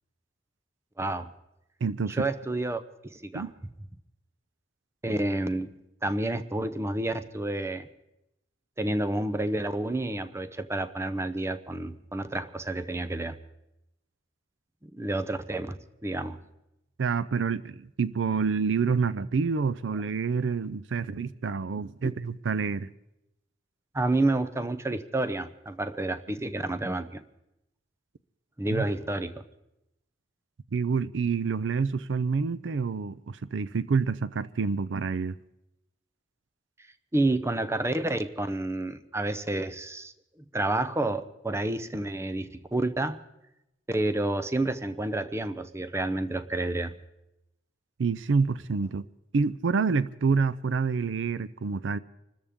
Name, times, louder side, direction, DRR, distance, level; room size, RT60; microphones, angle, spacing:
voice 1, 1.0-1.3 2.1-2.8 3.1-3.5 5.0-7.9 8.8-13.4 14.8-16.4 22.0-22.1 23.9-27.2 28.6-29.4 37.1-40.1 40.5-43.2 43.9-46.9, right 2 dB, 15° right, 0.7 m, -29 dB
voice 2, 1.8-2.3 3.3-3.5 17.0-22.9 28.7-28.8 30.7-35.3 48.0-49.1 49.3-52.0, right 5 dB, 70° right, 0.5 m, -27 dB
26.0 x 13.5 x 3.6 m
head